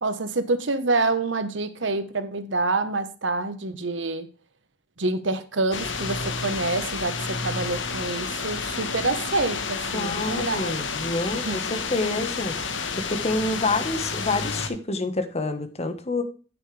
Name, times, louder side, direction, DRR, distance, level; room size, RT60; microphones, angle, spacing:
voice 1, 0.0-4.3 5.0-10.8 11.4-11.6, right 3 dB, 75° right, 1.2 m, -27 dB
sound 1, 5.7-14.7, left 5 dB, 80° left, 1.4 m, -30 dB
voice 2, 9.9-16.2, left 2 dB, 35° left, 1.4 m, -28 dB
9.9 x 9.3 x 3.4 m
head